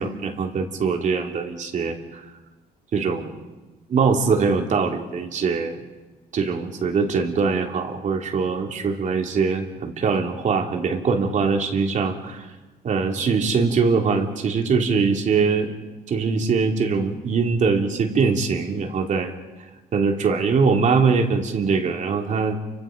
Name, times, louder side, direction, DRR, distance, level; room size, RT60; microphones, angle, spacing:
voice 1, 0.0-2.2 2.9-3.5 3.9-5.8 6.3-12.5 12.8-15.7 16.1-19.3 19.9-22.5, right 5 dB, 45° right, 3 dB, 3.2 m, -22 dB
29.0 x 25.0 x 5.3 m, 1.2 s
cardioid pair, 110°, 17 cm